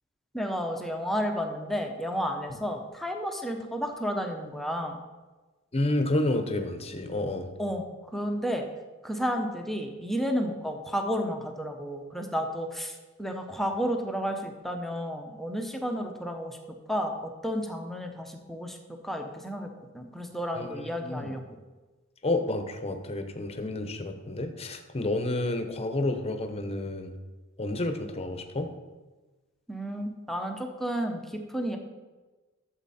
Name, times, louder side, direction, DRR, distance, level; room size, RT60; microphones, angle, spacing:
voice 1, 0.3-5.0 7.6-8.7 9.0-16.6 16.9-19.7 19.9-21.4 29.7-31.8, equal, ahead, 3 dB, 0.8 m, -32 dB
voice 2, 5.7-7.5 20.5-21.3 22.2-27.1 27.6-28.7, left 2 dB, 30° left, 7 dB, 0.9 m, -30 dB
12.0 x 7.3 x 4.2 m, 1.2 s
head